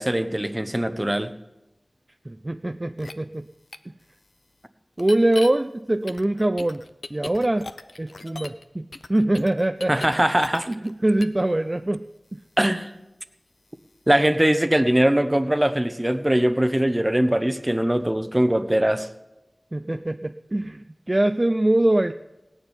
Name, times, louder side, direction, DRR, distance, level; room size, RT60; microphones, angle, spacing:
voice 1, 0.0-1.3 9.9-10.7 12.6-12.9 14.1-19.1, right 1 dB, 20° right, 11 dB, 0.9 m, -21 dB
voice 2, 2.3-3.5 5.0-6.8 7.1-7.7 8.0-10.0 10.7-12.1 12.3-12.4 19.7-22.1, right 1 dB, 35° right, 9 dB, 0.4 m, -23 dB
sound 1, 3.0-3.1 3.7-3.8 5.0-5.5 6.1-8.6 8.9-10.9 11.2-11.4, left 3 dB, 85° left, 0.7 m, -38 dB
17.5 x 7.0 x 9.6 m, 0.98 s
wide cardioid pair, 55°, 0 cm